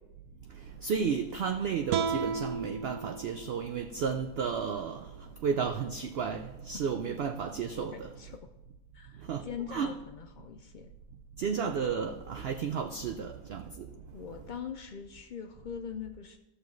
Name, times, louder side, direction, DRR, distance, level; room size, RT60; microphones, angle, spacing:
voice 1, 0.8-5.1 5.4-8.1 9.3-10.0 11.4-13.9, right 6 dB, 65° right, 0.6 m, -32 dB
sound 1, 1.9-5.1, right 5 dB, 85° right, 1.1 m, -36 dB
voice 2, 7.9-8.5 8.9-10.9 14.1-16.4, left 8 dB, 85° left, 0.4 m, -42 dB
14.0 x 6.4 x 3.1 m
omnidirectional pair, 1.5 m